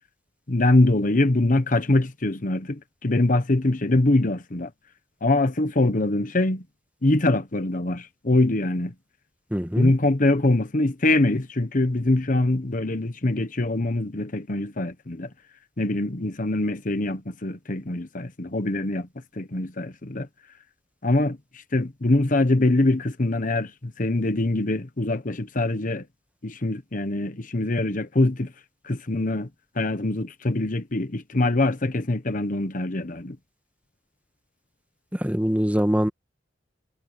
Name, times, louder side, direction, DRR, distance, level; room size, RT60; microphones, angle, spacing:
voice 1, 0.5-4.7 5.2-6.6 7.0-8.9 9.7-15.3 15.8-19.1 19.3-20.3 21.0-21.4 21.7-26.1 26.4-28.5 28.8-29.5 29.7-33.4, left 2 dB, 45° left, 1.2 m, -23 dB
voice 2, 9.5-9.9 35.1-36.1, equal, 10° right, 1.5 m, -23 dB
head